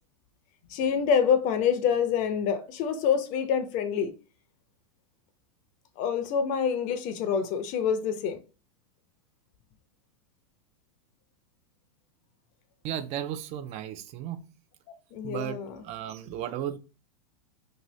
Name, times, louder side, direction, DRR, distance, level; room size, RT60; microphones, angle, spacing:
voice 1, 0.7-4.1 6.0-8.4 15.1-15.7, left 7 dB, 40° left, 0.5 m, -26 dB
voice 2, 12.8-14.4 15.2-15.6 15.8-16.8, right 11 dB, 35° right, 0.4 m, -34 dB
2.7 x 2.6 x 3.0 m
hypercardioid pair, 110°, 19 cm